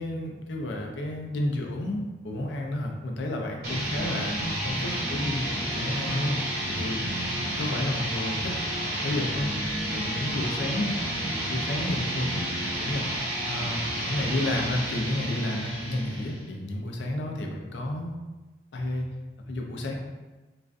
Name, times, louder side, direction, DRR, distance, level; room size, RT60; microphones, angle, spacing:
voice 1, 0.0-6.4 6.6-7.0 7.6-8.5 9.0-9.5 9.9-10.9 11.4-12.4 12.8-13.0 13.5-18.2 18.7-19.1 19.5-19.9, left 1 dB, 85° left, 1 dB, 0.4 m, -31 dB
sound 1, 3.6-16.5, right 1 dB, 55° right, 0.8 m, -31 dB
2.4 x 2.2 x 2.4 m, 1.2 s
head